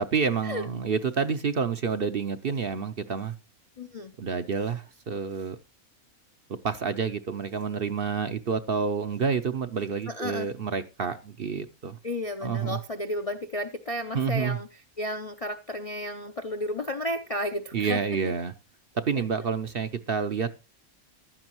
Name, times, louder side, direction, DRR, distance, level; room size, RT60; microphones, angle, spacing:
voice 1, 0.0-3.3 4.2-5.6 6.5-12.0 12.4-12.8 14.1-14.6 17.7-18.5 18.9-20.5, right 6 dB, 50° right, 0.8 m, -28 dB
voice 2, 3.8-4.1 10.1-10.5 12.0-14.7 15.0-18.0 18.2-18.3 19.1-19.2, left 1 dB, 40° left, 0.5 m, -32 dB
15.0 x 11.5 x 3.0 m
omnidirectional pair, 1.5 m